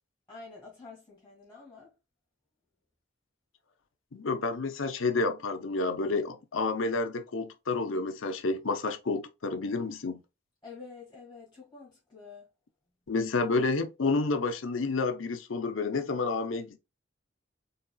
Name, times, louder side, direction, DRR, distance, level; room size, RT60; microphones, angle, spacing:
voice 1, 0.3-1.9 10.6-12.5, left 4 dB, 10° left, 2.1 m, -48 dB
voice 2, 4.1-10.2 13.1-16.8, left 3 dB, 85° left, 0.7 m, -30 dB
4.1 x 4.0 x 2.2 m
head